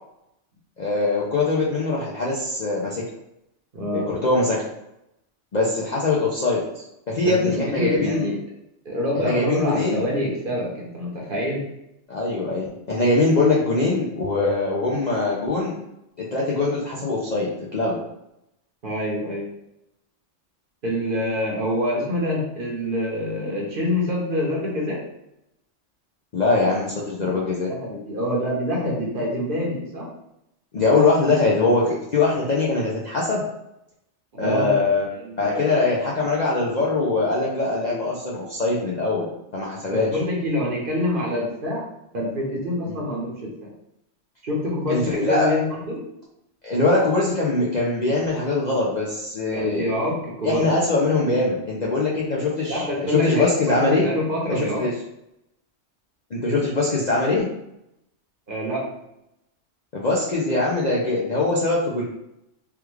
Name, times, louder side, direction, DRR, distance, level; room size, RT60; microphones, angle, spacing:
voice 1, 0.8-3.0 3.9-4.6 5.5-6.6 7.1-8.3 9.2-10.1 12.1-15.8 16.3-18.0 26.3-27.7 30.7-33.4 34.4-35.0 35.4-39.3 39.5-40.1 42.9-43.0 44.9-45.6 46.6-49.9 50.4-54.1 54.5-54.9 56.3-57.5 59.9-62.0, left 3 dB, 50° left, -5 dB, 0.5 m, -22 dB
voice 2, 3.7-4.1 7.2-8.4 8.8-11.7 18.8-19.5 20.8-25.1 27.1-27.3 27.7-30.1 34.3-34.8 35.1-35.7 39.9-41.9 42.1-43.7 44.4-46.0 49.5-50.7 52.7-54.9 58.5-58.9, left 1 dB, 50° right, -3 dB, 0.9 m, -26 dB
3.4 x 2.3 x 3.0 m, 0.83 s
omnidirectional pair, 1.3 m